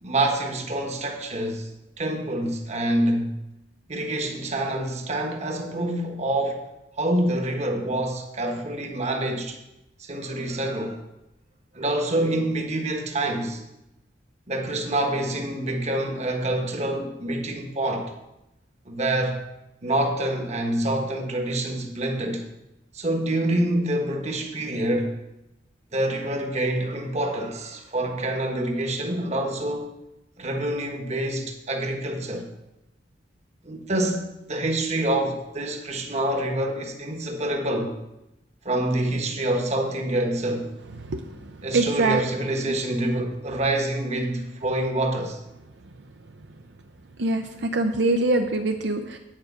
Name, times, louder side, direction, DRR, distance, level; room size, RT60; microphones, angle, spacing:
voice 1, 0.0-1.7 2.0-3.3 3.9-6.7 7.0-9.6 10.0-11.0 11.7-13.6 14.5-18.1 18.8-19.4 19.8-22.5 22.9-25.1 25.9-29.9 30.4-32.5 33.6-37.9 38.6-40.7 41.6-45.4, right 1 dB, 35° right, 1.3 m, -26 dB
voice 2, 41.7-42.2 47.2-49.2, right 2 dB, 65° right, 0.6 m, -23 dB
9.8 x 5.1 x 8.0 m
head